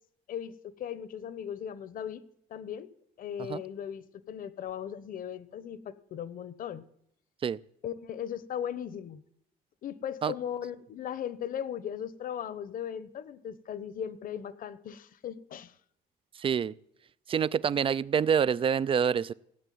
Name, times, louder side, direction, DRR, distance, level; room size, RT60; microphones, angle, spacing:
voice 1, 0.3-2.2 2.5-2.9 3.2-6.8 7.8-9.2 9.8-15.7, left 9 dB, 55° left, 16 dB, 1.2 m, -38 dB
voice 2, 16.4-16.7 17.3-19.3, right 7 dB, 30° right, 20 dB, 0.5 m, -27 dB
17.5 x 8.2 x 9.4 m, 0.73 s
cardioid pair, 110°, 17 cm